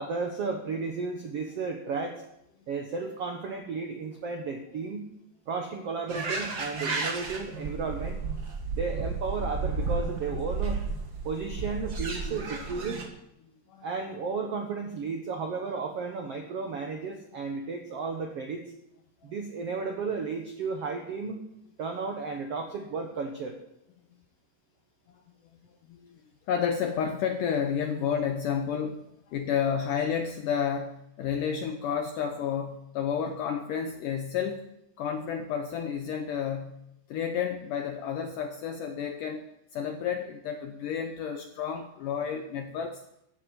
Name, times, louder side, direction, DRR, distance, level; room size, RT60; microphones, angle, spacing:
voice 1, 0.0-2.2 2.7-5.1 5.5-8.2 8.7-10.8 11.2-13.0 13.8-18.6 19.2-21.4 21.8-23.6, right 4 dB, 80° right, 4 dB, 1.3 m, -33 dB
sound 1, 6.1-13.1, right 4 dB, 50° right, 1.1 m, -33 dB
voice 2, 26.5-34.7 35.0-36.8 37.1-39.4 39.7-43.0, left 7 dB, 80° left, 6 dB, 1.9 m, -31 dB
14.5 x 8.1 x 8.2 m, 0.82 s
omnidirectional pair, 4.8 m